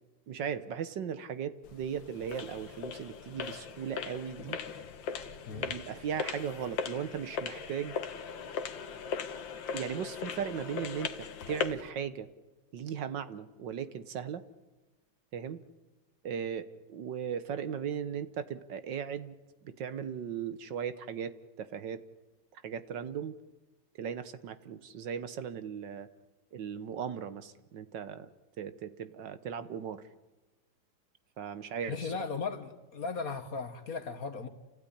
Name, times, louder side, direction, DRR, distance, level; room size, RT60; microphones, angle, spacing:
voice 1, 0.3-4.6 5.6-8.0 9.7-12.3 12.7-14.4 15.3-15.6 16.2-19.4 19.6-22.0 22.5-23.4 24.0-26.1 26.5-28.3 28.6-30.0 31.4-32.3, right 8 dB, 65° right, 13 dB, 1.6 m, -37 dB
sound 1, 1.6-11.9, left 7 dB, 70° left, 1.9 m, -39 dB
voice 2, 31.9-34.5, left 5 dB, 50° left, 9 dB, 1.6 m, -37 dB
28.5 x 16.0 x 10.0 m, 1.1 s
omnidirectional pair, 2.2 m